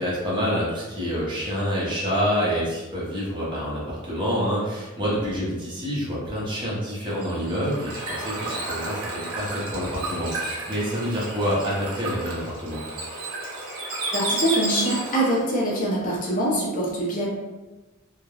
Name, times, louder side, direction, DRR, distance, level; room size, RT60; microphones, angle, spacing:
voice 1, 0.0-12.8, equal, 20° right, -7 dB, 0.7 m, -27 dB
Bird / Water, 7.1-15.5, right 2 dB, 75° right, 0.8 m, -32 dB
voice 2, 14.1-17.3, right 1 dB, 40° left, -4 dB, 0.6 m, -24 dB
3.1 x 2.1 x 2.3 m, 1.2 s
head